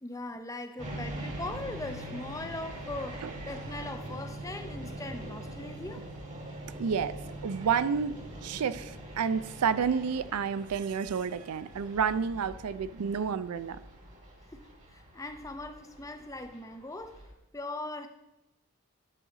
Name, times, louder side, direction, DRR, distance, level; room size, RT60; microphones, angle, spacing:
voice 1, 0.0-6.1 14.5-17.2 17.5-18.1, left 2 dB, 15° left, 8 dB, 0.5 m, -40 dB
sound 1, 0.8-17.3, right 1 dB, 30° right, 1.6 m, -43 dB
voice 2, 6.8-7.2 7.4-13.8, right 6 dB, 90° right, 14 dB, 0.4 m, -30 dB
11.5 x 6.3 x 3.9 m, 0.93 s
head